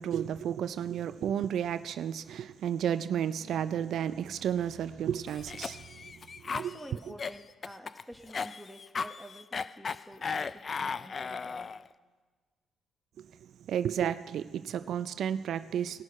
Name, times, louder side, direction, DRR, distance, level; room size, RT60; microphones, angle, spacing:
voice 1, 0.0-6.7 13.2-13.3 13.7-16.0, right 9 dB, 70° right, 14 dB, 0.3 m, -32 dB
Cough, 5.3-11.9, left 5 dB, 40° left, 0.3 m, -36 dB
voice 2, 6.5-11.8, equal, ahead, 7 dB, 1.2 m, -49 dB
18.0 x 6.3 x 5.4 m, 1.4 s
cardioid pair, 90°, 0 cm